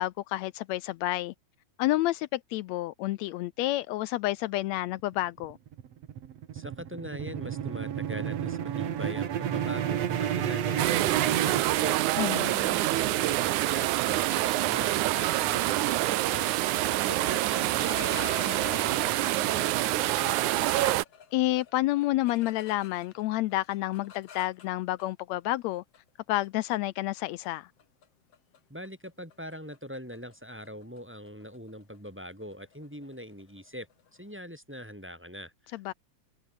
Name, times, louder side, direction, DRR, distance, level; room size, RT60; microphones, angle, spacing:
voice 1, 0.0-1.3 1.8-5.6 12.2-12.6 21.3-25.8 26.3-27.7 35.7-35.9, left 16 dB, 80° left, 1.7 m, -29 dB
sound 1, 5.2-12.4, right 10 dB, 60° right, 2.6 m, -31 dB
voice 2, 6.5-12.0 12.4-16.5 16.9-21.0 28.7-33.9 34.1-35.9, equal, 5° right, 4.3 m, -42 dB
sound 2, 10.8-21.0, right 16 dB, 80° right, 2.2 m, -26 dB
sound 3, 17.7-19.7 20.2-23.2 23.5-25.0 25.9-26.1 26.4-26.8 27.2-27.5 27.8-28.0 28.3-28.6 28.8-34.2, left 8 dB, 55° left, 3.0 m, -47 dB
omnidirectional pair, 3.4 m